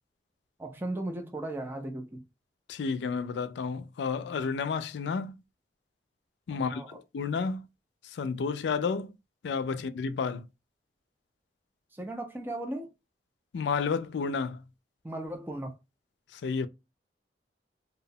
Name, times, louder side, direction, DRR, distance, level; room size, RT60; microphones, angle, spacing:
voice 1, 0.6-2.2 6.5-7.0 11.9-12.9 15.0-15.8, right 1 dB, 10° right, 0.4 m, -36 dB
voice 2, 2.7-5.4 6.5-7.7 8.0-9.1 9.4-10.5 13.5-14.6 16.3-16.7, left 5 dB, 75° left, 0.3 m, -31 dB
2.8 x 2.0 x 2.6 m
head